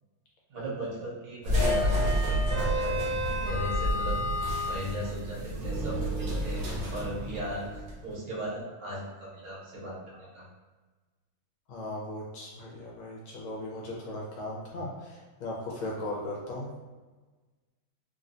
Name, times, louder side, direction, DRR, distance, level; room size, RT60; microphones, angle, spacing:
voice 1, 0.5-6.6 6.9-7.7 8.0-10.5 14.7-14.8, right 1 dB, 85° right, -6 dB, 2.0 m, -38 dB
sound 1, 1.4-8.0, equal, 60° right, 1.1 m, -29 dB
voice 2, 11.7-16.7, left 1 dB, 75° left, -4 dB, 1.6 m, -37 dB
4.2 x 2.2 x 2.5 m, 1.3 s
omnidirectional pair, 2.3 m